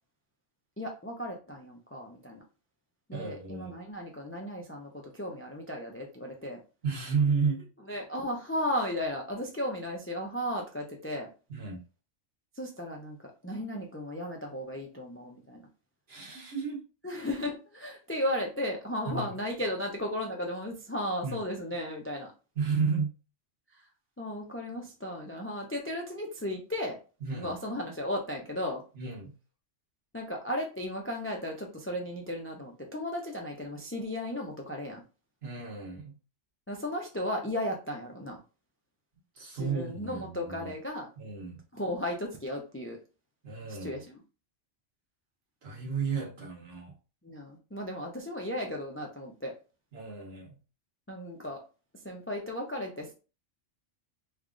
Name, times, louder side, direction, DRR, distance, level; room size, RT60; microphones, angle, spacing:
voice 1, 0.8-2.4 3.1-6.6 7.9-11.3 12.5-13.2 13.4-15.6 17.0-22.3 23.7-23.9 24.2-27.0 27.3-28.8 30.1-35.0 36.7-38.4 39.5-41.1 41.7-43.0 43.7-44.2 47.2-49.5 51.1-51.6 52.0-53.1, left 1 dB, 20° left, 1 dB, 0.3 m, -35 dB
voice 2, 3.1-3.7 6.8-7.7 11.5-11.8 16.1-16.8 19.1-19.3 21.2-21.4 22.6-23.1 27.2-27.5 28.9-29.3 35.4-36.2 39.3-40.7 41.2-41.6 43.4-44.0 45.6-47.0 49.9-50.6, right 5 dB, 60° right, -1 dB, 1.4 m, -32 dB
3.3 x 2.3 x 3.7 m, 0.33 s
omnidirectional pair, 1.2 m